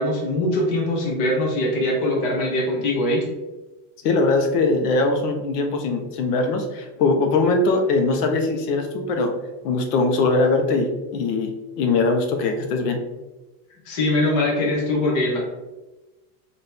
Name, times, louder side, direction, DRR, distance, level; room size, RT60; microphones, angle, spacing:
voice 1, 0.0-3.3 13.8-15.4, left 1 dB, 20° left, -2 dB, 0.3 m, -22 dB
voice 2, 4.0-9.3 9.6-13.0, left 3 dB, 90° left, 4 dB, 0.9 m, -21 dB
4.2 x 2.6 x 3.4 m, 1.1 s
supercardioid pair, 180°, 45 cm